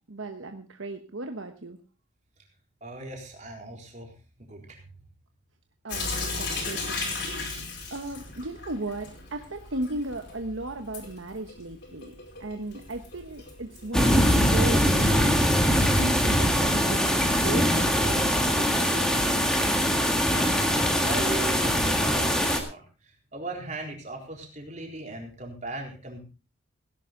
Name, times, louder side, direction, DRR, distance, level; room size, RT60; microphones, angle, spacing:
voice 1, 0.1-1.8 5.8-7.1 7.9-12.1 12.4-15.3 15.6-19.8, right 2 dB, 70° right, 6 dB, 1.2 m, -36 dB
voice 2, 2.8-4.1 4.5-4.8 20.3-26.2, right 2 dB, 35° right, 1 dB, 4.0 m, -38 dB
Sink (filling or washing) / Drip, 5.9-14.8, left 3 dB, 55° left, 4.9 m, -37 dB
sound 1, 13.9-22.6, equal, 5° left, 1.8 m, -22 dB
17.5 x 11.0 x 3.8 m, 0.32 s
head